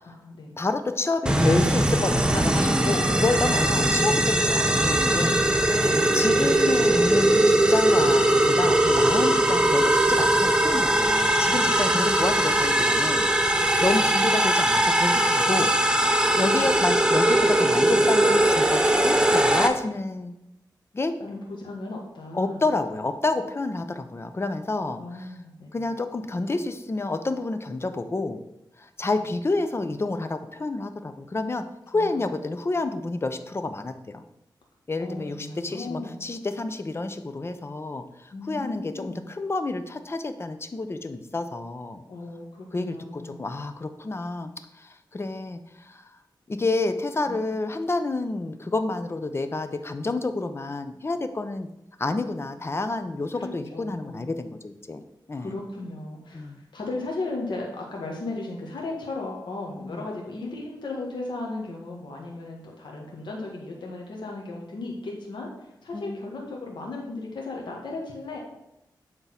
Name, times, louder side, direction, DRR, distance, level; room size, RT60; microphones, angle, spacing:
voice 1, 0.0-0.6 5.6-5.9 11.9-12.7 13.9-14.1 21.2-22.6 25.0-25.8 29.1-29.3 31.9-32.3 35.0-36.3 38.3-39.3 42.1-43.4 47.3-47.4 53.3-54.3 55.3-68.5, left 2 dB, 85° left, -1 dB, 1.5 m, -36 dB
voice 2, 0.6-5.4 5.7-15.7 16.3-20.3 20.9-21.2 22.3-25.3 25.7-28.4 28.8-34.2 34.9-42.0 42.7-46.0 46.5-51.7 52.0-55.0 55.3-55.6 56.3-56.6 59.8-60.0 65.9-66.2, left 2 dB, 30° left, 9 dB, 0.7 m, -29 dB
sound 1, 1.3-19.7, right 1 dB, 10° right, 0.7 m, -20 dB
8.1 x 3.7 x 5.8 m, 0.86 s
wide cardioid pair, 90°, 8 cm